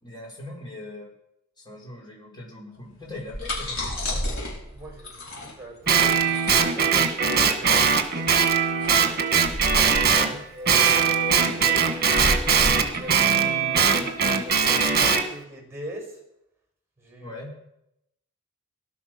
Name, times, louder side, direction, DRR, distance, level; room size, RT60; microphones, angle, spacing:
voice 1, 0.0-1.1 1.6-4.2 10.1-10.4 17.2-17.5, left 2 dB, 20° left, -1 dB, 4.8 m, -40 dB
sound 1, 3.0-14.4, left 1 dB, 70° left, 5.8 m, -33 dB
voice 2, 4.7-8.1 10.2-16.2 17.0-17.4, equal, 15° right, 2 dB, 5.6 m, -41 dB
Guitar, 5.9-10.3 10.7-15.2, right 6 dB, 45° right, 1.6 m, -21 dB
18.5 x 12.0 x 6.1 m, 0.83 s
head